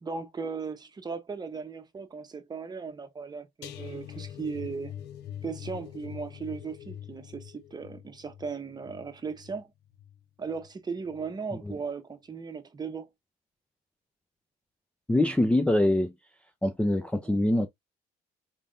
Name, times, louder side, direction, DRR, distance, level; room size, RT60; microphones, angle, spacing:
voice 1, 0.0-4.9 5.4-9.7 10.4-13.1 17.2-17.4, right 5 dB, 25° right, 0.9 m, -37 dB
sound 1, 3.6-10.7 11.0-11.3 11.7-11.8, left 10 dB, 85° left, 0.8 m, -44 dB
voice 2, 15.1-16.1 16.6-17.7, left 1 dB, 5° left, 0.5 m, -24 dB
4.3 x 3.4 x 2.5 m
cardioid pair, 110°, 17 cm